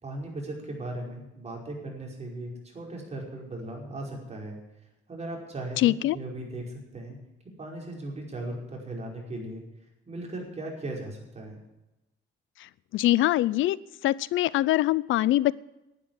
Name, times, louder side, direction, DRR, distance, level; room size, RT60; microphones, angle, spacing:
voice 1, 0.0-4.6 5.1-7.2 7.6-9.6 10.1-11.6, right 1 dB, 35° right, -1 dB, 5.2 m, -37 dB
voice 2, 5.8-6.2 12.9-13.8 14.0-15.5, left 15 dB, 80° left, 21 dB, 0.5 m, -23 dB
11.5 x 9.4 x 9.5 m, 0.96 s
cardioid pair, 90°, 20 cm